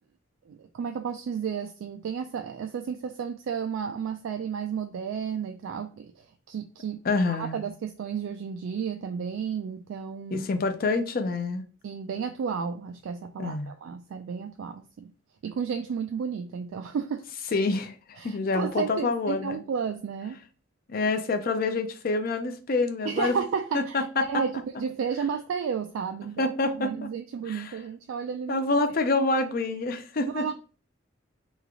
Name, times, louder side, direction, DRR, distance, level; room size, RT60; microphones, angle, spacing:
voice 1, 0.5-7.0 7.3-10.5 11.8-15.1 15.4-17.3 18.2-20.4 23.0-28.6 30.3-30.5, right 6 dB, 80° right, 0.3 m, -32 dB
voice 2, 7.1-7.6 10.3-11.6 13.4-13.7 17.5-19.6 20.9-23.3 23.7-24.0 26.4-27.1 27.5-27.7 28.5-30.5, left 3 dB, 50° left, 0.5 m, -27 dB
3.1 x 2.4 x 3.5 m
head